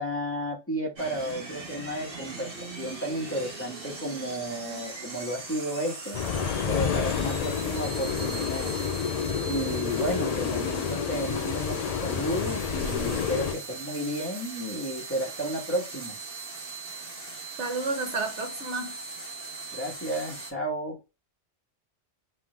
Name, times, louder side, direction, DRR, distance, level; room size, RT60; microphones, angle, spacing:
voice 1, 0.0-6.2 6.6-8.7 9.4-16.2 19.7-21.0, right 1 dB, 10° left, 1.6 m, -32 dB
sound 1, 1.0-20.5, right 3 dB, 55° right, 1.5 m, -40 dB
sound 2, 6.1-13.5, left 7 dB, 50° left, 0.5 m, -29 dB
voice 2, 17.6-19.0, right 3 dB, 85° right, 1.3 m, -31 dB
3.7 x 3.3 x 3.2 m
omnidirectional pair, 1.1 m